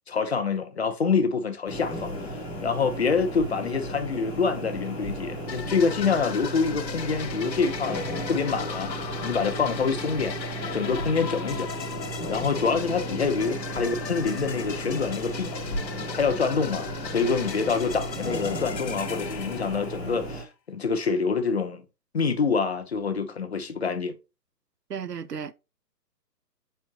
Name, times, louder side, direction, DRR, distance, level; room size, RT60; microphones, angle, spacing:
voice 1, 0.1-2.1 2.6-8.0 8.3-8.9 9.2-10.4 10.7-11.7 12.3-15.5 16.1-21.8 22.1-24.1, left 5 dB, 40° left, 0.8 m, -26 dB
sound 1, 1.7-20.4, right 1 dB, 15° left, 1.9 m, -34 dB
sound 2, 5.5-20.3, left 7 dB, 85° left, 0.7 m, -38 dB
voice 2, 24.9-25.5, right 7 dB, 70° right, 0.7 m, -34 dB
7.2 x 4.5 x 2.9 m
figure-of-eight pair, 140°, 50 cm